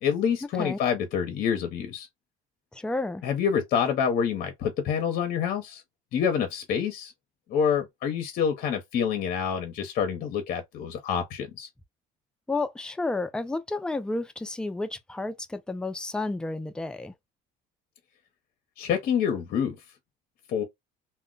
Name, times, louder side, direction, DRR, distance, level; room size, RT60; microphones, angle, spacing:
voice 1, 0.0-2.1 3.2-5.8 6.1-7.1 7.5-11.7 18.8-19.8 20.5-20.6, left 7 dB, 55° left, 0.7 m, -27 dB
voice 2, 2.7-3.2 12.5-17.1, left 2 dB, 5° left, 0.3 m, -31 dB
2.1 x 2.1 x 3.7 m
cardioid pair, 125°, 18 cm